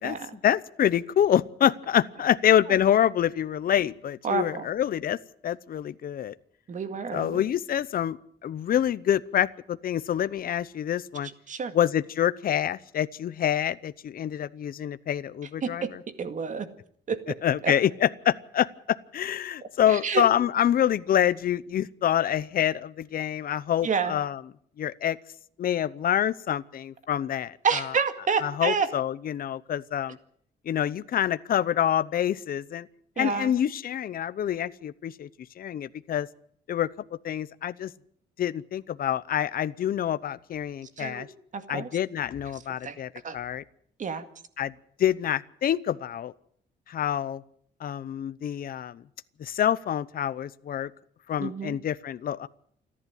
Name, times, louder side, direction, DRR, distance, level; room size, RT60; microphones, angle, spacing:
voice 1, 0.0-5.2 5.4-6.3 7.1-11.3 11.7-16.0 17.4-24.4 24.8-25.2 25.6-27.9 28.4-30.2 30.7-32.9 33.2-35.3 35.6-36.3 36.7-36.9 37.2-37.9 38.4-41.3 41.7-43.6 44.6-44.7 45.0-46.3 46.9-47.4 47.8-49.0 49.4-50.9 51.3-52.5, left 10 dB, 55° left, 16 dB, 0.8 m, -26 dB
voice 2, 4.2-4.7 6.7-7.4 11.5-11.7 15.6-15.9 16.2-16.7 17.1-17.4 17.6-17.7 19.9-20.2 23.8-24.2 27.6-28.9 33.2-33.5 41.0-41.3 41.5-41.9 42.8-43.0 43.2-43.4 44.0-44.2 51.4-51.8, right 6 dB, 45° right, 10 dB, 2.1 m, -29 dB
28.5 x 11.0 x 9.0 m, 0.64 s
cardioid pair, 155°, 18 cm